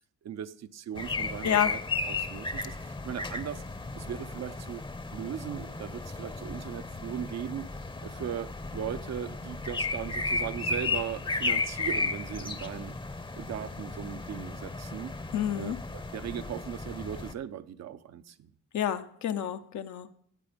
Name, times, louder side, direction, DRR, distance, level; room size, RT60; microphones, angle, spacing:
voice 1, 0.2-1.8 2.1-3.6 3.9-4.8 5.1-13.0 13.4-15.1 15.5-18.5, right 9 dB, 60° right, 11 dB, 0.8 m, -38 dB
sound 1, 0.9-17.3, left 3 dB, 15° left, 0.8 m, -34 dB
voice 2, 1.4-1.7 15.3-15.8 18.7-20.1, left 10 dB, 70° left, 9 dB, 0.9 m, -29 dB
14.5 x 8.1 x 5.2 m, 0.70 s
cardioid pair, 90°, 30 cm